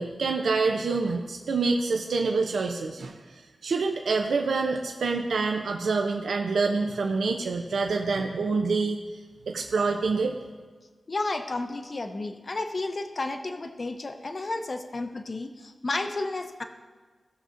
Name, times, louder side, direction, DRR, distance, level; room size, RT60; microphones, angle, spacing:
voice 1, 0.0-3.2 3.6-9.0 9.5-10.4, right 4 dB, 90° right, 2 dB, 0.6 m, -26 dB
voice 2, 11.1-16.6, left 2 dB, 40° left, 6 dB, 0.6 m, -32 dB
16.5 x 6.5 x 2.5 m, 1.4 s
wide cardioid pair, 125°, 0 cm